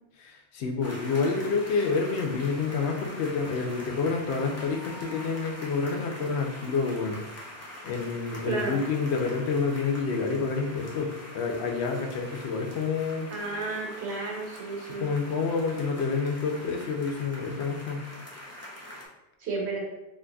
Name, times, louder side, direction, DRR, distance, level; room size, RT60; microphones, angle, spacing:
voice 1, 0.2-7.2 7.8-13.3 15.0-18.0, left 4 dB, 90° left, 2 dB, 0.9 m, -28 dB
sound 1, 0.8-19.1, left 1 dB, 20° left, 0.4 m, -44 dB
voice 2, 8.5-8.8 13.3-15.1 19.4-19.8, right 3 dB, 85° right, -2 dB, 1.1 m, -32 dB
3.8 x 2.6 x 2.2 m, 0.98 s
omnidirectional pair, 1.1 m